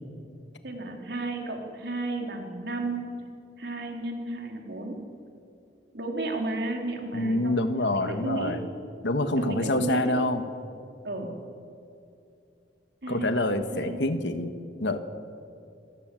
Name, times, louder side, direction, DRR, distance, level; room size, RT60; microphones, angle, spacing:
voice 1, 0.6-3.0 3.6-5.0 5.9-8.6 9.4-10.2 11.0-11.3 13.0-14.0, right 2 dB, 60° right, 2 dB, 3.7 m, -33 dB
voice 2, 7.1-8.6 9.0-10.4 13.1-14.5 14.8-15.0, left 1 dB, 70° left, 8 dB, 1.6 m, -26 dB
26.5 x 18.0 x 7.7 m, 2.6 s
head